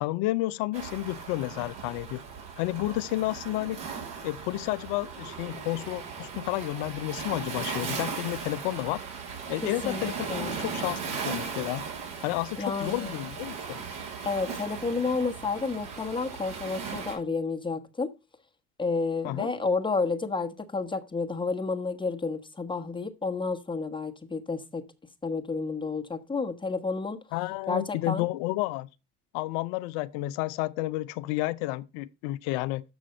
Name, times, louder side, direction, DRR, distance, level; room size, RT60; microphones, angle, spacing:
voice 1, 0.0-2.2 2.6-3.8 4.2-9.0 9.5-11.8 12.2-13.8 19.2-19.5 27.3-28.9 29.3-32.8, left 18 dB, 60° left, 0.6 m, -31 dB
Waves surf, 0.7-17.2, right 5 dB, 60° right, 3.3 m, -37 dB
voice 2, 9.6-10.6 12.6-13.1 14.2-18.1 18.8-24.8 25.2-27.2 27.7-28.2, left 4 dB, 10° left, 1.2 m, -30 dB
7.0 x 6.2 x 5.2 m
hypercardioid pair, 65°, 46 cm